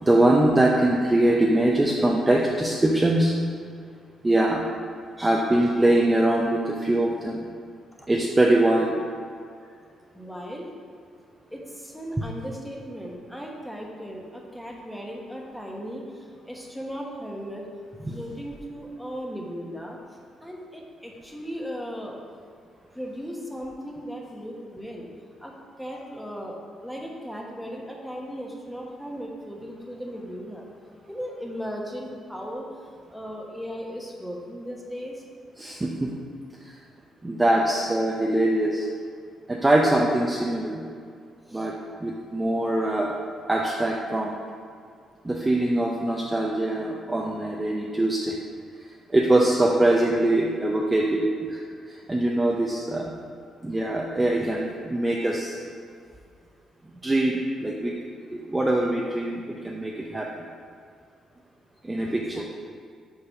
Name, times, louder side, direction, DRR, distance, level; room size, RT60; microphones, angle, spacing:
voice 1, 0.0-3.3 4.2-4.6 5.2-7.5 8.1-8.9 18.0-18.2 35.6-36.1 37.2-38.9 39.5-40.8 41.5-41.7 42.0-43.1 43.5-44.4 45.2-48.3 49.1-51.6 52.1-53.0 53.6-55.6 57.0-57.9 58.3-60.3 61.8-62.4, right 1 dB, 15° right, -2 dB, 0.6 m, -22 dB
voice 2, 10.1-10.7 11.5-16.0 16.5-17.6 18.1-20.0 20.4-22.1 22.9-25.1 25.4-25.5 25.8-26.6 26.8-30.6 31.1-32.7 33.1-35.1 41.5-41.7 62.1-62.4, equal, ahead, -1 dB, 1.1 m, -37 dB
5.4 x 4.0 x 5.8 m, 2.2 s
cardioid pair, 90°, 0 cm